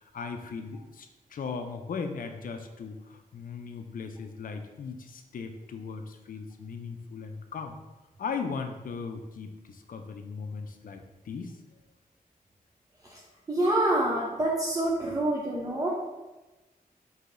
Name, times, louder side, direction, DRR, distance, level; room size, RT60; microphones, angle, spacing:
voice 1, 0.0-7.8 8.2-11.6, left 5 dB, 65° left, 5 dB, 0.4 m, -38 dB
voice 2, 13.5-15.9, right 1 dB, 25° right, -3 dB, 0.5 m, -26 dB
4.7 x 2.7 x 2.5 m, 1.1 s
wide cardioid pair, 110°, 15 cm